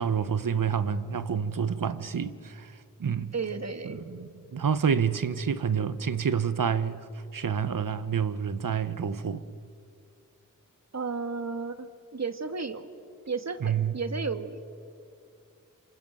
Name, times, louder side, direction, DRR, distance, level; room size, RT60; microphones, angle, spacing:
voice 1, 0.0-2.7 3.0-3.3 3.9-7.1 7.3-9.4 13.6-13.9, right 7 dB, 70° right, 1.2 m, -28 dB
voice 2, 3.3-4.0 10.9-12.9 13.3-14.6, right 4 dB, 50° right, 1.8 m, -33 dB
28.0 x 25.5 x 8.0 m
cardioid pair, 55°, 33 cm